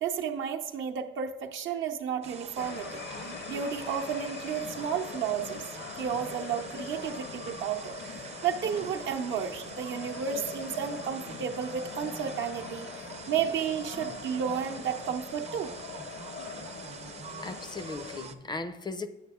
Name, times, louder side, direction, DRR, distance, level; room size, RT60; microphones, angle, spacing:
voice 1, 0.0-3.0 3.5-5.6 6.0-7.9 8.4-15.8, right 7 dB, 75° right, 0.7 m, -32 dB
sound 1, 2.2-18.3, right 5 dB, 35° right, 0.5 m, -45 dB
sound 2, 2.6-18.2, left 6 dB, 70° left, 0.7 m, -43 dB
Car, 4.0-15.1, left 5 dB, 85° left, 1.4 m, -52 dB
voice 2, 17.4-19.1, left 3 dB, 20° left, 0.4 m, -37 dB
8.3 x 6.5 x 3.6 m
cardioid pair, 90°, 20 cm